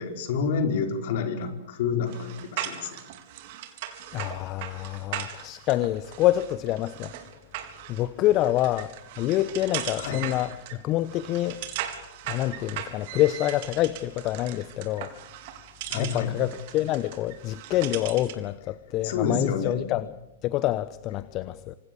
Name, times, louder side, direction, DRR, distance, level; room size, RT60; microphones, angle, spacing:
voice 1, 0.0-3.0 10.0-10.2 15.9-16.3 19.0-19.8, left 5 dB, 55° left, 5.0 m, -28 dB
sound 1, 2.1-18.5, right 11 dB, 50° right, 3.7 m, -39 dB
voice 2, 4.1-7.1 7.9-11.6 12.3-15.1 15.9-20.1 20.4-21.8, left 15 dB, 35° left, 1.0 m, -27 dB
28.0 x 26.5 x 7.1 m
hypercardioid pair, 105°, 0 cm